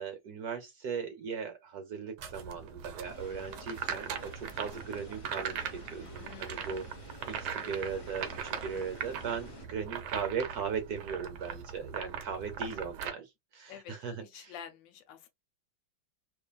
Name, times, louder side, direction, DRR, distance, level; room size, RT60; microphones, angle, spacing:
voice 1, 0.0-14.5, right 6 dB, 65° right, 1.0 m, -38 dB
sound 1, 2.2-13.1, right 7 dB, 90° right, 1.6 m, -40 dB
sound 2, 3.0-9.7, left 5 dB, 30° left, 1.3 m, -52 dB
voice 2, 6.2-6.8 13.7-13.9 14.2-15.3, left 8 dB, 75° left, 1.3 m, -48 dB
4.8 x 2.5 x 2.2 m
omnidirectional pair, 2.2 m